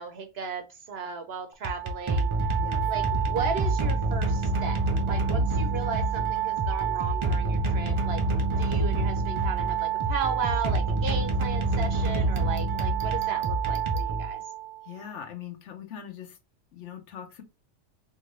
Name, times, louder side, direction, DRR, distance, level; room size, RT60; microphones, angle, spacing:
voice 1, 0.0-2.3 2.9-8.2 8.6-14.4, right 5 dB, 60° right, 0.8 m, -35 dB
sound 1, 1.5-14.7, right 3 dB, 40° right, 0.4 m, -26 dB
voice 2, 14.8-16.4 16.7-17.4, left 9 dB, 70° left, 1.0 m, -41 dB
3.6 x 2.5 x 3.1 m
omnidirectional pair, 1.3 m